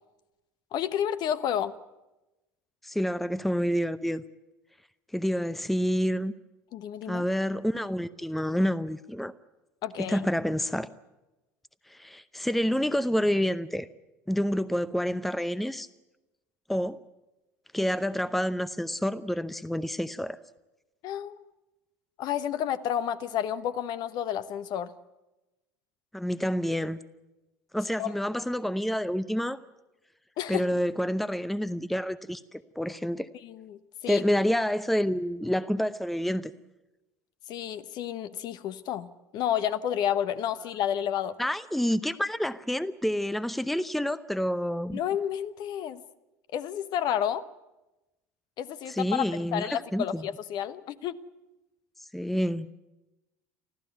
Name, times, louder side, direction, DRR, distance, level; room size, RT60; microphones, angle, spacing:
voice 1, 0.7-1.7 6.7-7.2 9.8-10.2 21.0-21.4 22.2-24.9 28.0-28.1 30.4-30.6 33.4-33.8 34.0-34.2 37.5-41.4 44.9-46.0 46.5-47.4 48.6-51.2, left 10 dB, 50° left, 13 dB, 1.1 m, -30 dB
voice 2, 2.8-4.2 5.1-6.3 7.1-9.3 10.0-10.9 11.9-13.9 14.3-15.9 16.7-17.0 17.7-20.4 26.1-27.0 27.7-29.6 30.5-33.3 34.1-36.5 41.4-45.0 48.9-50.3 52.1-52.7, equal, ahead, 16 dB, 0.7 m, -28 dB
25.0 x 15.0 x 9.3 m, 1.0 s
figure-of-eight pair, 70°, 9 cm